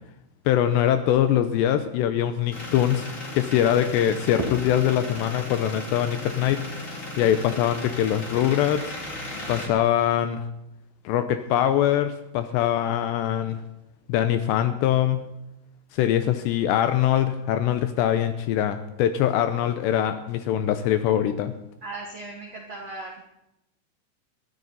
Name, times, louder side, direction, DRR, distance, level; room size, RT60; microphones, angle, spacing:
voice 1, 0.5-6.7 7.2-9.0 9.5-10.5 11.1-13.6 14.1-15.3 15.9-21.5, left 11 dB, 80° left, 10 dB, 2.6 m, -23 dB
sound 1, 2.5-9.7, left 1 dB, 30° left, 1.6 m, -36 dB
voice 2, 21.8-23.2, right 2 dB, 65° right, -1 dB, 1.6 m, -37 dB
21.5 x 14.0 x 4.1 m, 0.87 s
omnidirectional pair, 5.5 m